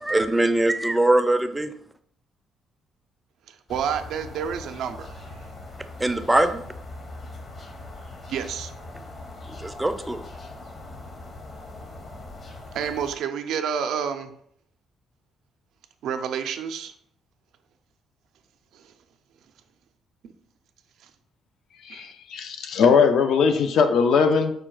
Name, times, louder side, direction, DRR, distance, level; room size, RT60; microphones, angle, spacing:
voice 1, 0.0-1.7 6.0-6.6 9.6-10.2, right 1 dB, 10° right, 8 dB, 0.4 m, -21 dB
voice 2, 3.5-5.4 8.3-8.7 12.7-14.3 16.0-16.9 18.7-18.9 20.2-20.3 21.0-21.1 21.9-22.1, right 7 dB, 80° right, 7 dB, 0.4 m, -29 dB
sound 1, 3.7-13.2, left 2 dB, 45° left, 0.8 m, -41 dB
voice 3, 21.9-24.5, left 5 dB, 70° left, 7 dB, 0.5 m, -20 dB
4.8 x 2.3 x 4.5 m, 0.66 s
cardioid pair, 90°, 0 cm